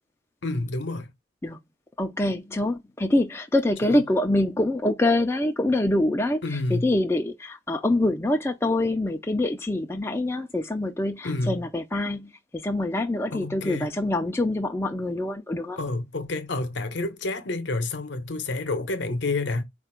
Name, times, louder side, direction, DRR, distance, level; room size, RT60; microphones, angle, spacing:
voice 1, 0.4-1.1 3.8-4.0 6.4-6.9 11.2-11.7 13.3-13.9 15.8-19.6, left 2 dB, 60° left, 0.7 m, -29 dB
voice 2, 2.0-15.8, left 1 dB, 15° left, 0.4 m, -25 dB
4.4 x 2.4 x 4.3 m
head